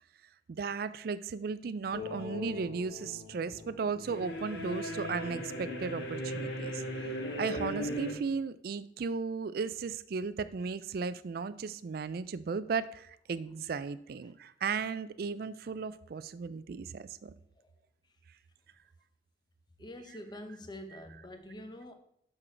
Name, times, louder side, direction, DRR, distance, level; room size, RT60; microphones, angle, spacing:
voice 1, 0.5-6.8 7.4-17.3, right 5 dB, 55° right, 0.4 m, -35 dB
sound 1, 1.9-8.1, left 1 dB, 65° left, 1.4 m, -38 dB
voice 2, 19.8-21.9, left 1 dB, 25° left, 0.7 m, -46 dB
6.5 x 6.0 x 4.4 m
head